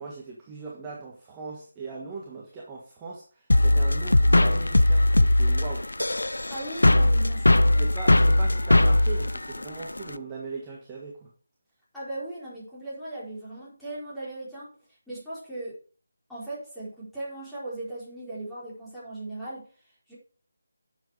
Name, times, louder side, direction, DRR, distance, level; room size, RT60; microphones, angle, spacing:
voice 1, 0.0-5.9 7.8-11.3, right 4 dB, 15° right, 1.6 m, -39 dB
sound 1, 3.5-10.1, left 1 dB, 80° left, 0.6 m, -20 dB
voice 2, 6.5-7.8 11.9-14.7 15.1-15.8 16.3-19.7 20.1-20.2, right 2 dB, ahead, 4.3 m, -38 dB
10.0 x 7.5 x 4.8 m
figure-of-eight pair, 160°, 0 cm